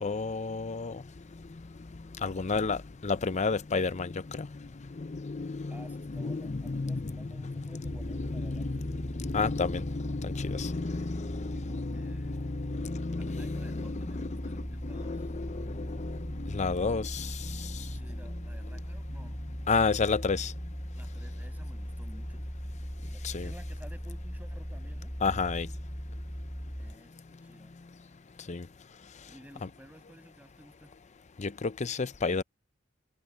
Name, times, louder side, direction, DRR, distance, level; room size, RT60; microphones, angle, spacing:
voice 1, 0.0-1.0 2.2-17.9 19.7-20.5 23.2-23.5 25.2-25.7 28.5-28.7 29.6-29.7 31.4-32.4, left 4 dB, 35° left, 0.6 m, -32 dB
voice 2, 5.7-8.9 11.5-15.3 17.9-19.4 21.0-25.1 26.8-27.7 29.3-30.9, equal, 10° right, 7.2 m, -54 dB
sound 1, 7.8-26.9, equal, 10° left, 1.9 m, -38 dB
head